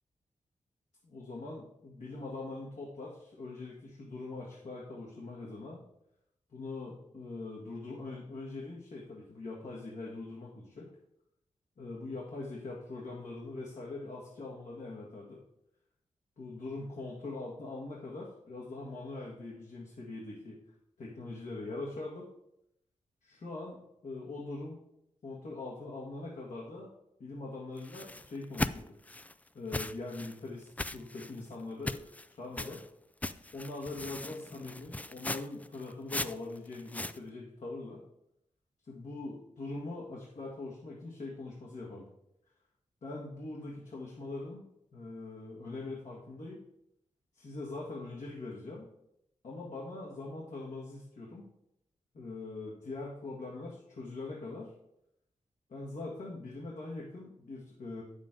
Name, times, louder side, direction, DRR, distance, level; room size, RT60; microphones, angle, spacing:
voice 1, 1.0-5.8 6.5-10.9 11.8-15.4 16.4-20.6 21.0-22.3 23.2-24.8 25.2-26.9 27.2-28.9 29.5-32.1 32.4-32.8 33.5-38.0 38.9-42.1 43.0-44.6 44.9-46.6 47.3-48.9 49.4-51.4 52.1-54.7 55.7-58.0, left 2 dB, 70° left, -3 dB, 1.7 m, -42 dB
sound 1, 27.8-29.3 29.7-30.3 30.8-31.4 31.9-32.3 32.6-32.9 33.2-37.2, left 2 dB, 10° left, 0.3 m, -38 dB
9.0 x 7.3 x 3.8 m, 0.81 s
cardioid pair, 70°, 13 cm